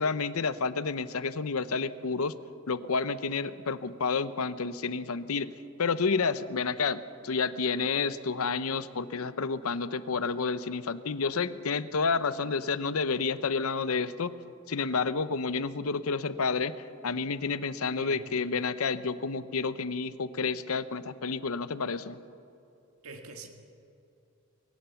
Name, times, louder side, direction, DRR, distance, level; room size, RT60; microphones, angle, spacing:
voice 1, 0.0-2.4 2.7-5.5 5.8-14.4 14.7-16.7 17.0-22.2, left 4 dB, 90° left, 14 dB, 0.8 m, -30 dB
voice 2, 23.0-23.5, right 3 dB, 85° right, 4 dB, 1.9 m, -44 dB
23.0 x 16.0 x 7.0 m, 2.7 s
head